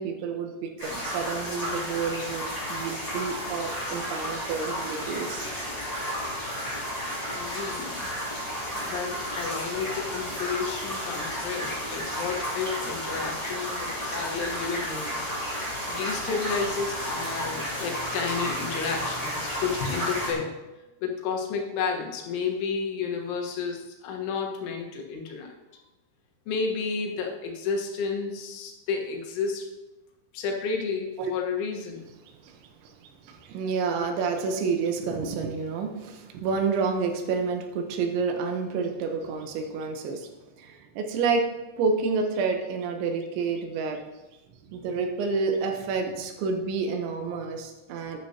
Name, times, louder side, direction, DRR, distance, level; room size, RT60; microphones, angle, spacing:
voice 1, 0.0-5.5 31.2-31.3 32.3-40.3 40.6-41.5 41.8-44.0 44.7-48.2, right 4 dB, 80° right, 4 dB, 3.4 m, -29 dB
sound 1, 0.8-20.3, equal, 10° left, 2.7 m, -32 dB
voice 2, 7.3-8.1 8.4-15.2 15.9-20.5 21.0-25.6 26.5-29.7 30.3-32.0, left 5 dB, 90° left, 1 dB, 3.8 m, -31 dB
12.5 x 10.0 x 2.9 m, 1.1 s
omnidirectional pair, 5.3 m